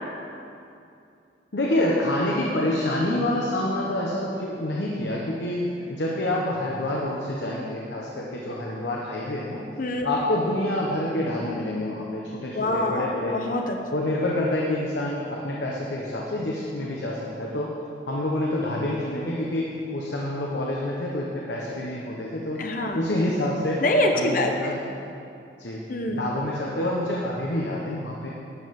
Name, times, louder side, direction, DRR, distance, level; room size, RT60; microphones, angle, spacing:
voice 1, 1.5-9.6 10.0-13.4 13.9-17.7 18.1-22.6 22.9-23.8 24.1-24.7 25.6-25.8 26.1-28.3, left 1 dB, 80° left, -3 dB, 1.2 m, -27 dB
voice 2, 12.5-13.8 22.6-23.0 23.8-24.7 25.9-26.2, left 1 dB, 50° left, 3 dB, 1.0 m, -25 dB
12.0 x 5.5 x 7.7 m, 2.6 s
head